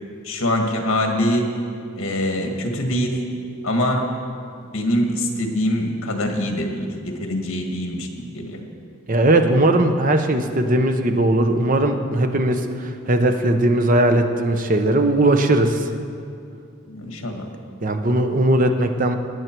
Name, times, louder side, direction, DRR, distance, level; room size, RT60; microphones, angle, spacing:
voice 1, 0.2-1.5 2.0-3.3 3.6-4.1 4.7-8.6 16.9-17.5, left 1 dB, 70° left, 3 dB, 1.7 m, -23 dB
voice 2, 9.1-15.9 17.8-19.2, right 1 dB, 40° right, 6 dB, 0.8 m, -19 dB
17.5 x 9.4 x 4.5 m, 2.4 s
head